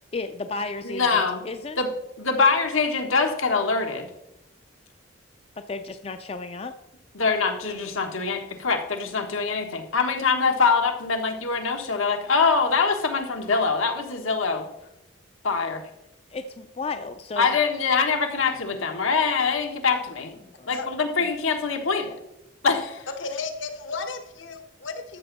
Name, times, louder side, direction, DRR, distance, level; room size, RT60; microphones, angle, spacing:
voice 1, 0.1-1.8 5.6-6.7 16.3-17.6 19.0-19.1 20.4-20.7 21.2-21.3, left 3 dB, 30° left, 9 dB, 0.4 m, -34 dB
voice 2, 0.8-1.4 1.8-1.9 2.2-4.1 7.1-14.6 15.4-15.8 17.4-20.3 20.7-22.1 22.6-23.0, left 4 dB, 85° left, 4 dB, 1.4 m, -24 dB
voice 3, 23.2-25.2, left 4 dB, 70° left, 8 dB, 1.1 m, -34 dB
13.0 x 7.0 x 4.1 m, 0.87 s
head